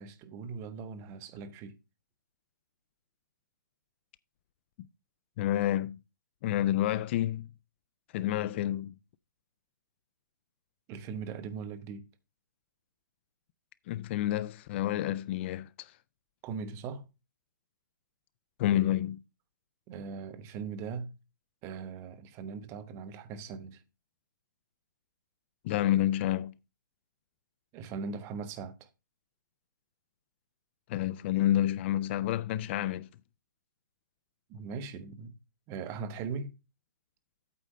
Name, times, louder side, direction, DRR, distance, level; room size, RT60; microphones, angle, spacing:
voice 1, 0.0-1.8 10.9-12.1 16.4-17.0 19.9-21.2 21.6-23.8 27.7-28.9 34.5-35.4 35.7-36.5, right 5 dB, 25° right, 0.9 m, -40 dB
voice 2, 5.4-6.0 6.4-7.5 8.1-9.0 13.9-15.9 18.6-19.2 25.6-26.5 30.9-33.1, left 13 dB, 35° left, 0.4 m, -29 dB
8.6 x 4.1 x 6.3 m
hypercardioid pair, 135°, 11 cm